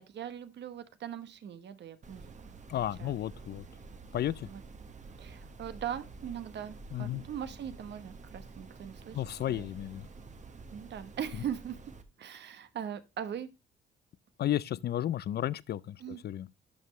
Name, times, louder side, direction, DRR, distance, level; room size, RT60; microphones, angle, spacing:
voice 1, 0.0-2.6 3.0-3.2 4.4-4.6 5.2-9.2 9.5-9.7 10.7-11.8 12.2-13.5 16.0-16.2, right 9 dB, 60° right, 1.0 m, -40 dB
sound 1, 2.0-12.0, right 4 dB, 35° right, 1.2 m, -49 dB
voice 2, 2.7-3.7 4.1-4.5 6.9-7.2 9.1-10.1 14.4-16.5, left 12 dB, 55° left, 0.5 m, -33 dB
11.5 x 5.4 x 3.1 m
cardioid pair, 90°, 20 cm